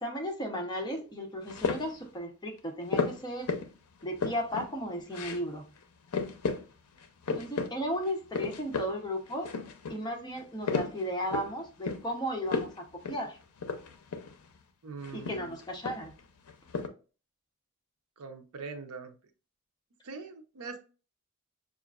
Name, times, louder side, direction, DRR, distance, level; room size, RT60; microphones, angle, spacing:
voice 1, 0.0-3.5 4.0-5.6 7.4-9.5 9.9-13.4 15.1-16.1, equal, 20° left, 2 dB, 0.7 m, -35 dB
sound 1, 1.5-2.0 2.9-3.7 4.0-4.7 5.1-5.5 5.8-5.9 6.1-6.6 7.0-7.7 8.0-8.9 9.3-10.0 10.4-11.5 11.8-12.1 12.5-12.8 13.0-13.2 13.6-14.4 15.0-16.2 16.5-16.9, left 4 dB, 70° left, 0.5 m, -33 dB
voice 2, 14.8-15.5 18.2-19.1 20.0-20.8, right 4 dB, 70° right, 6 dB, 0.6 m, -42 dB
5.8 x 2.4 x 2.3 m, 0.35 s
head